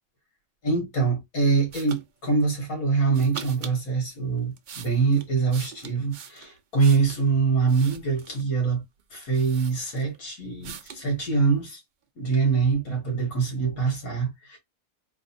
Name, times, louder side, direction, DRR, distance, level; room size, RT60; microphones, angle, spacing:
voice 1, 0.6-8.8 9.1-11.8 12.2-14.6, right 4 dB, 85° left, 2.4 m, -24 dB
sound 1, 1.7-2.0 3.1-3.8 4.4-7.2 7.7-8.5 9.0-9.1 9.3-10.2 10.6-11.1, right 7 dB, 70° right, 0.4 m, -42 dB
4.0 x 2.2 x 4.3 m
omnidirectional pair, 1.5 m